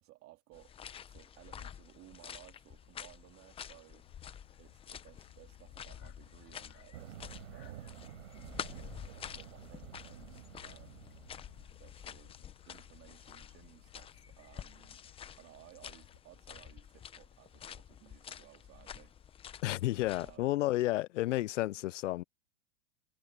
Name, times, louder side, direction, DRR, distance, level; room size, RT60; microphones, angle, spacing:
voice 1, 0.0-0.8 1.1-4.1 4.6-7.9 8.3-11.2 11.8-15.0 15.4-19.1 20.2-20.5, right 17 dB, 35° right, 3.5 m, -59 dB
sound 1, 0.5-20.4, left 8 dB, 15° left, 0.7 m, -49 dB
sound 2, 4.0-16.2, left 25 dB, 50° left, 3.0 m, -61 dB
sound 3, 6.9-11.8, right 11 dB, 80° right, 7.1 m, -50 dB
voice 2, 19.6-22.2, left 16 dB, 75° left, 0.7 m, -31 dB
hypercardioid pair, 140°, 37 cm